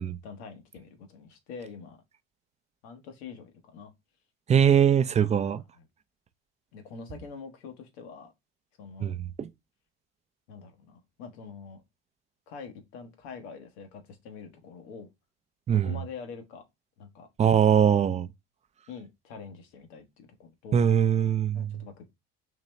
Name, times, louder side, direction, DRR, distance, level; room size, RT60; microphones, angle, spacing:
voice 1, 0.0-2.0 2.8-3.9 4.6-4.7 5.8-5.9 6.7-8.3 8.8-9.2 10.5-11.8 12.5-15.1 15.7-16.6 17.0-17.3 18.9-20.9 21.5-22.1, left 5 dB, 85° left, 1.0 m, -45 dB
voice 2, 4.5-5.6 9.0-9.5 15.7-15.9 17.4-18.3 20.7-21.7, right 8 dB, 20° right, 0.4 m, -22 dB
3.9 x 3.0 x 3.1 m
supercardioid pair, 85°, 32 cm